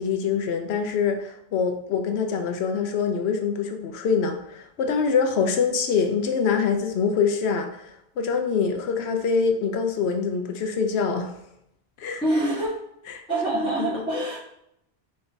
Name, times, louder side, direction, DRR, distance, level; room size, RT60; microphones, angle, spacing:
voice 1, 0.0-11.4 12.0-12.2 13.1-13.2 13.9-14.0, left 5 dB, 80° left, 4 dB, 0.9 m, -25 dB
voice 2, 12.2-12.7 13.3-14.4, right 1 dB, 5° left, -13 dB, 1.6 m, -25 dB
3.8 x 3.4 x 3.9 m, 0.76 s
omnidirectional pair, 1.1 m